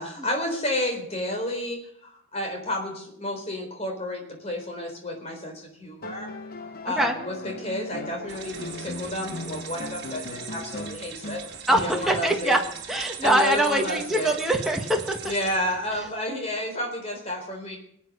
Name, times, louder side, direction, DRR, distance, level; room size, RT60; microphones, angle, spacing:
voice 1, 0.0-6.3 6.6-11.4 11.7-12.5 13.2-14.4 15.2-17.8, left 1 dB, 30° left, 2 dB, 4.0 m, -31 dB
sound 1, 6.0-12.5 13.9-14.0, left 2 dB, 45° left, 1.0 m, -39 dB
voice 2, 6.8-7.2 11.7-12.6 12.9-15.2, right 1 dB, ahead, 1 dB, 1.5 m, -23 dB
sound 2, 8.3-16.2, right 8 dB, 55° right, 1.7 m, -40 dB
22.0 x 8.6 x 6.7 m, 0.70 s
head